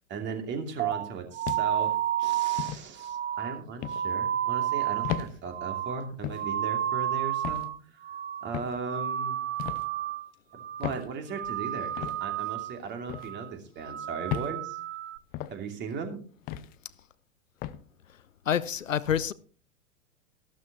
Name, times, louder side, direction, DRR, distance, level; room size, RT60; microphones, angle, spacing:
voice 1, 0.1-8.0 8.4-9.4 10.5-14.8 15.5-16.2, right 5 dB, 25° right, 2.7 m, -37 dB
sound 1, 0.8-7.8 8.0-8.6 8.8-10.3 10.6-11.0 11.3-12.8 13.1-13.5 13.8-15.2, right 11 dB, 60° right, 1.0 m, -31 dB
sound 2, 1.4-1.9 2.6-2.8 3.8-4.1 5.0-5.3 6.2-6.5 7.4-7.7 8.5-8.8 9.6-9.9 10.8-11.1 12.0-12.2 13.1-13.3 14.3-14.6 15.3-15.6 16.5-16.7 17.6-17.8, left 12 dB, 25° left, 0.5 m, -34 dB
voice 2, 18.5-19.3, left 9 dB, 75° left, 0.7 m, -27 dB
14.0 x 12.5 x 3.0 m
figure-of-eight pair, 95°, 39 cm